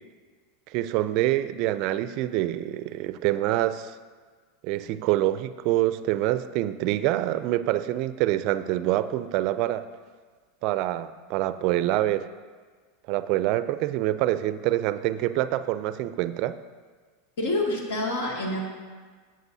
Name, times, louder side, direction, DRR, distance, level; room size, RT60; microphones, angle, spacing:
voice 1, 0.7-4.0 4.6-9.8 10.6-12.3 13.1-16.6, right 14 dB, 55° right, 14 dB, 0.4 m, -26 dB
voice 2, 17.4-18.6, left 1 dB, 75° left, -1 dB, 2.2 m, -27 dB
13.0 x 7.6 x 2.7 m, 1.5 s
hypercardioid pair, 110°, 0 cm